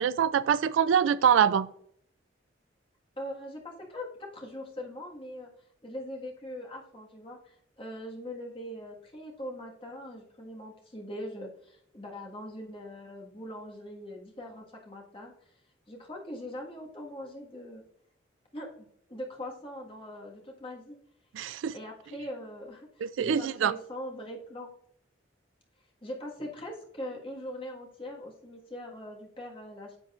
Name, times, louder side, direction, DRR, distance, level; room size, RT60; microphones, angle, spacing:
voice 1, 0.0-1.7 21.3-21.7 23.0-23.7, right 8 dB, 90° right, 0.3 m, -24 dB
voice 2, 3.2-5.5 5.8-15.6 15.9-17.8 18.5-21.0 21.7-24.7 26.0-30.0, left 1 dB, 30° left, 1.5 m, -41 dB
9.9 x 6.8 x 2.4 m
head